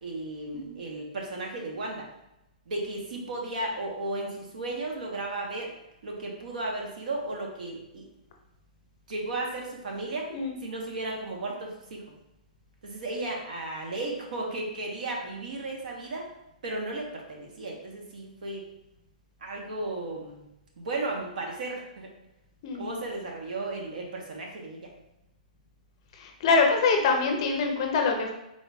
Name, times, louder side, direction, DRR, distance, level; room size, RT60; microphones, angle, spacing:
voice 1, 0.0-2.0 2.7-5.7 6.0-8.0 9.1-10.3 10.6-12.0 12.8-16.3 16.6-18.6 19.4-20.4 20.8-22.1 22.8-24.8, right 2 dB, 70° right, 0 dB, 1.0 m, -34 dB
voice 2, 26.2-28.3, left 4 dB, 35° left, 3 dB, 0.5 m, -25 dB
3.8 x 3.8 x 2.3 m, 0.87 s
hypercardioid pair, 165°, 5 cm